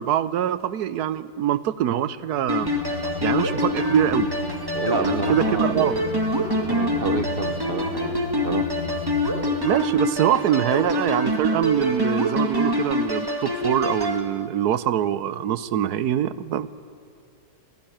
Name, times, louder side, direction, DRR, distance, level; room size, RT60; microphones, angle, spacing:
voice 1, 0.0-2.7 3.2-4.3 5.0-6.0 9.6-16.7, right 10 dB, 85° right, 16 dB, 1.3 m, -24 dB
sound 1, 2.5-14.2, equal, 15° right, 1.9 m, -25 dB
sound 2, 2.6-9.5, left 6 dB, 65° left, 1.6 m, -34 dB
voice 2, 4.7-6.0 6.6-8.2 8.4-8.7, right 4 dB, 45° right, 10 dB, 0.9 m, -29 dB
27.5 x 15.0 x 9.0 m, 2.5 s
omnidirectional pair, 1.7 m